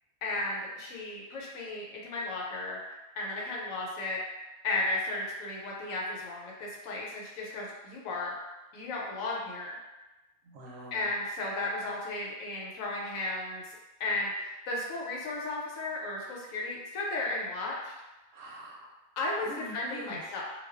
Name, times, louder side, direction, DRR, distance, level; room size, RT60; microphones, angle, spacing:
voice 1, 0.2-2.8 3.2-4.2 4.6-8.3 8.7-9.8 10.9-17.9 19.2-20.4, left 2 dB, 80° left, -3 dB, 1.0 m, -34 dB
voice 2, 10.4-11.1 18.3-18.9 19.4-20.2, right 1 dB, 75° right, -3 dB, 0.9 m, -45 dB
2.3 x 2.2 x 2.3 m, 1.1 s
omnidirectional pair, 1.4 m